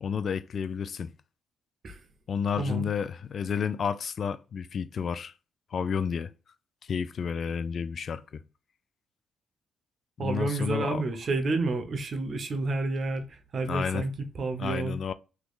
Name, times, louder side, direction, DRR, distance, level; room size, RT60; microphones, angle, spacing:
voice 1, 0.0-1.1 2.3-5.3 5.7-6.3 6.8-8.4 10.2-11.0 13.7-14.0 14.6-15.1, left 6 dB, 50° left, 0.3 m, -31 dB
voice 2, 10.2-14.1 14.4-15.0, right 3 dB, 45° right, 0.7 m, -30 dB
3.5 x 3.0 x 2.3 m
cardioid pair, 90°, 0 cm